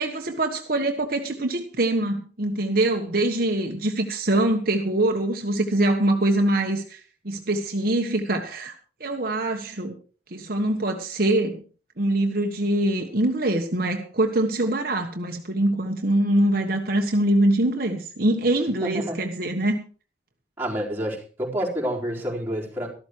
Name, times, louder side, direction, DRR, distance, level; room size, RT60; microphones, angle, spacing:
voice 1, 0.0-7.0 7.2-9.9 10.3-11.6 12.0-19.8, right 1 dB, 55° right, 3 dB, 1.4 m, -24 dB
voice 2, 18.8-19.2 20.6-22.9, equal, 10° right, -4 dB, 4.1 m, -28 dB
13.5 x 13.0 x 4.6 m, 0.38 s
head